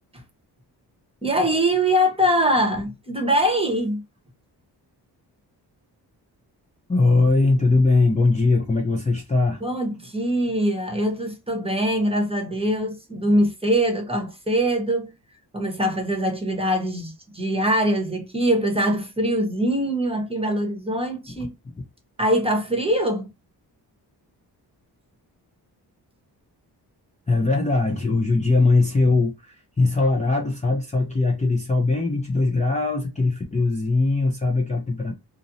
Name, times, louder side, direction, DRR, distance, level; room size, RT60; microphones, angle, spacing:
voice 1, 1.2-4.0 9.6-15.1 15.5-21.5 22.2-23.3, equal, 15° right, 0.9 m, -23 dB
voice 2, 6.9-9.6 27.3-35.2, left 3 dB, 15° left, 0.6 m, -20 dB
2.5 x 2.0 x 2.6 m
cardioid pair, 65°, 41 cm